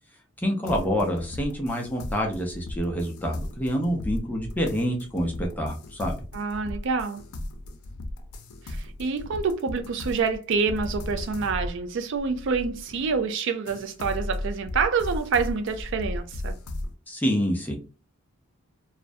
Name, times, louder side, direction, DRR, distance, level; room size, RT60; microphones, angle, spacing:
voice 1, 0.4-6.2 17.1-17.8, equal, 10° left, 0.5 m, -27 dB
sound 1, 0.7-13.2 13.7-16.9, left 1 dB, 90° left, 0.5 m, -36 dB
voice 2, 6.3-7.2 8.7-16.5, right 5 dB, 55° right, 0.3 m, -27 dB
2.4 x 2.1 x 2.5 m
head